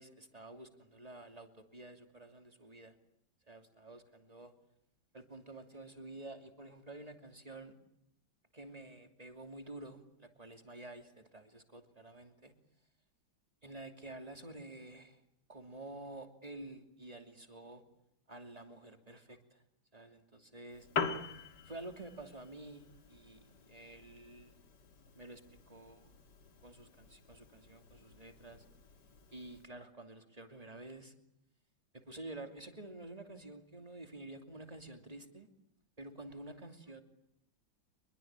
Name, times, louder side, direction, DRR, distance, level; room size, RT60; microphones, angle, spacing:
voice 1, 0.0-2.9 3.5-4.5 5.1-7.7 8.5-12.5 13.6-15.2 15.5-17.8 18.3-19.6 19.9-20.9 21.6-24.6 25.1-26.1 26.6-28.6 29.3-31.1 31.9-35.5 36.0-37.0, right 2 dB, 20° right, 6 dB, 2.9 m, -50 dB
Piano, 20.7-29.7, left 5 dB, 60° left, 2.5 m, -45 dB
25.5 x 22.0 x 9.0 m, 0.77 s
omnidirectional pair, 2.1 m